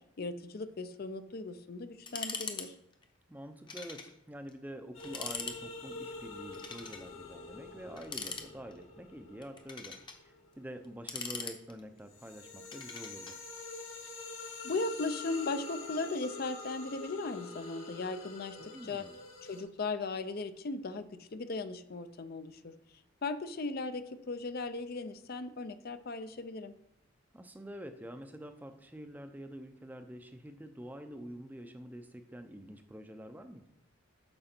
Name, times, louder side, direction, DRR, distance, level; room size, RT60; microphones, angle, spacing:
voice 1, 0.2-2.7 14.6-19.1 19.4-22.7 23.2-26.7, left 3 dB, 50° left, 11 dB, 0.5 m, -37 dB
sound 1, 2.1-2.7 2.9-3.0 3.7-4.1 4.5-4.6 5.0-5.6 6.5-7.1 8.0-8.8 9.4-10.2 10.8-12.0 12.7-13.4, left 5 dB, 25° left, 0.8 m, -41 dB
voice 2, 3.3-13.4 18.6-19.2 27.3-33.7, equal, 10° right, 7 dB, 0.5 m, -47 dB
sound 2, 4.9-11.3 11.8-19.6, left 3 dB, 75° left, 2.1 m, -46 dB
8.8 x 6.1 x 4.4 m, 0.77 s
head